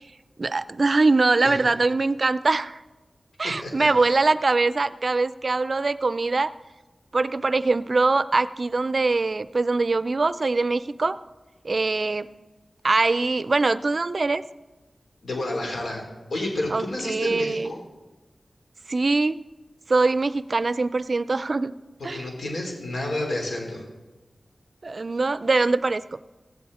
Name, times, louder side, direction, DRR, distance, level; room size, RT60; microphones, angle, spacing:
voice 1, 0.4-2.8 3.4-6.5 7.1-11.2 11.6-12.3 12.8-14.4 16.7-17.7 18.9-19.4 19.9-21.7 22.0-22.2 24.8-26.0, right 3 dB, 55° right, 15 dB, 0.5 m, -22 dB
voice 2, 3.4-4.2 15.2-16.0 16.3-17.8 22.1-23.8, left 1 dB, 80° left, 0 dB, 4.2 m, -30 dB
15.5 x 15.5 x 4.3 m, 1.2 s
wide cardioid pair, 75°, 0 cm